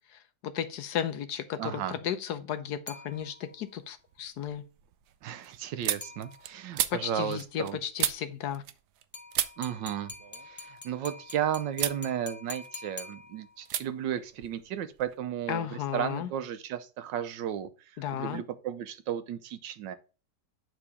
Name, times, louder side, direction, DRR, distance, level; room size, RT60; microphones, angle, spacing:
voice 1, 0.4-4.6 6.9-8.6 15.5-16.3 18.0-18.4, left 9 dB, 70° left, 1.2 m, -34 dB
voice 2, 1.6-2.0 5.2-7.8 9.6-10.1 10.4-20.0, right 10 dB, 90° right, 1.4 m, -34 dB
sound 1, 2.9-3.7 6.0-6.8 9.1-13.8, left 2 dB, 15° left, 0.4 m, -46 dB
sound 2, 3.1-3.6 4.0-9.0 9.3-11.3 11.7-12.0 12.4-13.1 13.6-13.8 14.1-15.2, right 11 dB, 70° right, 1.1 m, -35 dB
9.0 x 3.9 x 3.5 m
omnidirectional pair, 1.9 m